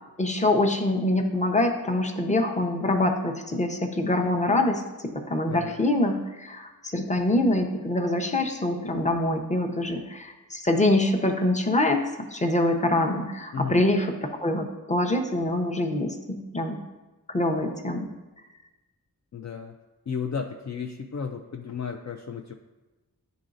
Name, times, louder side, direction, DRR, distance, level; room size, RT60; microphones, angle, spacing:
voice 1, 0.2-16.8 17.3-18.1, left 1 dB, 20° left, 4 dB, 0.8 m, -25 dB
voice 2, 5.5-5.8 13.5-13.8 19.3-19.8 20.1-22.5, left 6 dB, 50° left, 3 dB, 0.5 m, -33 dB
10.5 x 3.9 x 2.5 m, 1.1 s
wide cardioid pair, 55°, 36 cm